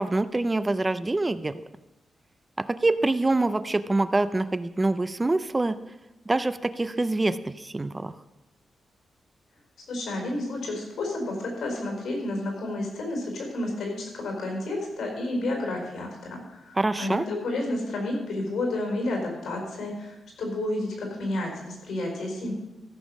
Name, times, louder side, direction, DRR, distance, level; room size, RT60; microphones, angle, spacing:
voice 1, 0.0-1.5 2.7-5.7 6.3-8.1 16.8-17.3, right 2 dB, 15° right, 13 dB, 0.3 m, -25 dB
voice 2, 9.9-22.5, left 2 dB, 80° left, 1 dB, 4.7 m, -31 dB
14.5 x 7.1 x 6.2 m, 1.0 s
wide cardioid pair, 180°, 0 cm